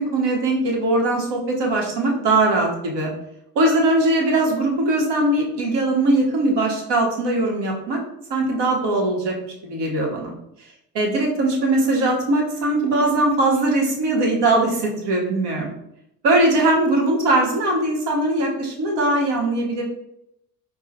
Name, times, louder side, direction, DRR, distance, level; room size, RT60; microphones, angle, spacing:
voice 1, 0.0-3.1 3.5-8.0 8.3-9.3 9.6-10.3 10.9-15.7 16.2-19.8, right 2 dB, 60° right, 0 dB, 1.2 m, -20 dB
4.7 x 2.3 x 2.7 m, 0.81 s
hypercardioid pair, 65°, 48 cm